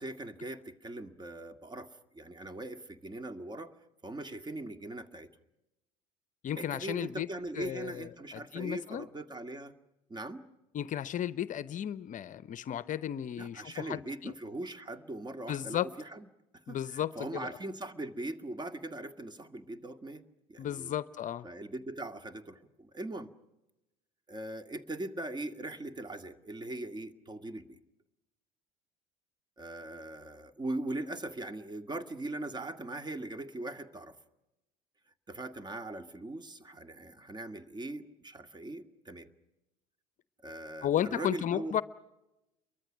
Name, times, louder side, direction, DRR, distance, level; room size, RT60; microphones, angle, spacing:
voice 1, 0.0-3.7 4.0-5.3 6.6-9.8 10.1-10.4 13.4-16.3 16.7-20.2 20.5-20.9 21.4-23.3 24.3-27.8 29.6-34.2 35.3-39.3 40.4-41.8, right 2 dB, 20° right, 1.9 m, -40 dB
voice 2, 6.4-7.3 7.6-9.0 10.7-14.3 15.5-15.9 16.7-17.5 20.6-21.5 40.8-41.8, left 10 dB, 40° left, 0.8 m, -34 dB
29.5 x 23.5 x 6.2 m
hypercardioid pair, 70°, 20 cm